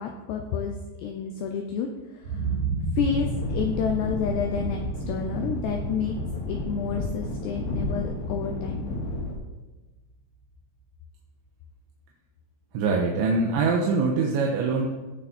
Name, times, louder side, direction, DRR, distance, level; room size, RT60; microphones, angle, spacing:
voice 1, 0.0-1.9 2.2-2.4 3.0-4.8 5.1-6.2 6.5-8.9, left 6 dB, 80° left, 3 dB, 2.6 m, -29 dB
sound 1, 2.2-10.1 10.5-10.6, right 4 dB, 40° right, 3.2 m, -34 dB
sound 2, 3.0-9.3, left 2 dB, 60° left, 4.1 m, -32 dB
voice 2, 12.7-14.9, right 4 dB, 75° right, 0 dB, 3.1 m, -23 dB
17.0 x 7.0 x 4.3 m, 1.2 s
omnidirectional pair, 5.7 m